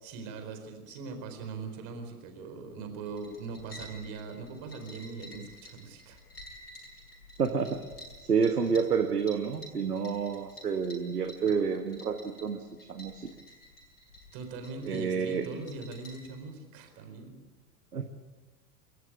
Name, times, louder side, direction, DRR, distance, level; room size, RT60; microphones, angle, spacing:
voice 1, 0.0-6.2 14.3-17.4, right 4 dB, 45° right, 6 dB, 4.3 m, -41 dB
sound 1, 3.0-16.3, equal, 75° left, 7.6 m, -51 dB
voice 2, 7.4-7.8 8.2-12.6 12.9-13.3 14.9-15.5 17.9-18.0, right 6 dB, 75° right, 6 dB, 1.5 m, -29 dB
29.0 x 14.5 x 8.6 m, 1.3 s
figure-of-eight pair, 85°, 46 cm